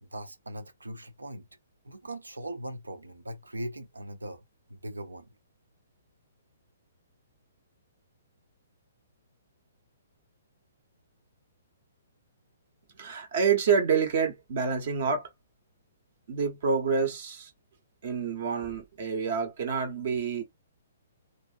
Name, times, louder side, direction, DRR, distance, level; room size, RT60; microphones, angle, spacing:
voice 1, 0.0-1.5 1.8-4.4 4.7-5.3, right 1 dB, 80° right, 0.6 m, -40 dB
voice 2, 13.0-15.3 16.3-17.5 18.0-20.4, right 6 dB, 55° right, 0.9 m, -27 dB
2.5 x 2.5 x 2.4 m
figure-of-eight pair, 125°, 0 cm